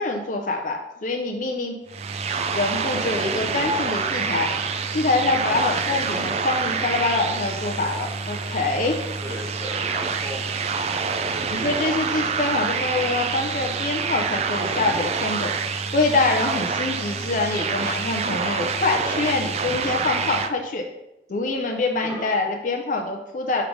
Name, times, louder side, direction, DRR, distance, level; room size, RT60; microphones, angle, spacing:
voice 1, 0.0-1.8 2.5-4.5 4.9-9.0 11.5-15.5 15.9-20.8 21.3-23.6, left 3 dB, 45° left, 2 dB, 0.5 m, -25 dB
sound 1, 1.9-20.5, right 5 dB, 35° right, 0.3 m, -27 dB
voice 2, 5.6-6.0 9.2-10.6 22.0-22.3, equal, 15° right, -7 dB, 2.2 m, -36 dB
6.2 x 3.3 x 5.1 m, 0.91 s
head